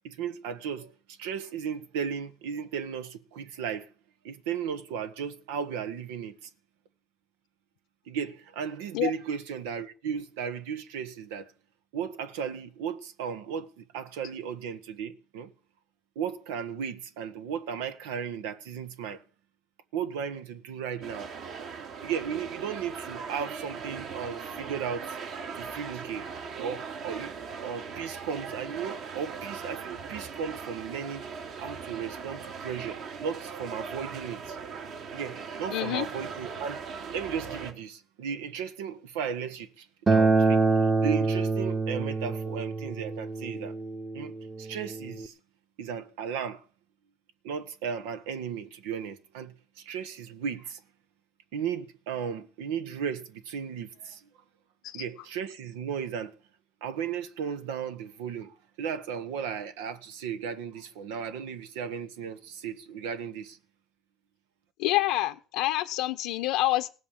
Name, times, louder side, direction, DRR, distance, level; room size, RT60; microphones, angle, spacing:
voice 1, 0.0-3.9 4.2-6.5 8.1-11.5 11.9-15.5 16.1-19.2 19.9-21.3 22.0-25.2 25.5-26.3 26.5-27.3 27.6-31.3 31.6-34.6 35.1-36.8 37.1-43.7 44.1-45.3 45.8-46.6 47.4-50.8 51.5-54.3 54.9-56.4 56.8-63.6, right 7 dB, 90° right, 1.4 m, -35 dB
sound 1, 21.0-37.7, right 5 dB, 65° right, 3.5 m, -39 dB
voice 2, 35.7-36.0 54.8-55.0 64.8-66.9, left 16 dB, 85° left, 1.0 m, -27 dB
Acoustic guitar, 40.1-45.3, right 3 dB, 20° right, 1.1 m, -26 dB
18.0 x 8.0 x 7.5 m
supercardioid pair, 100°, 0 cm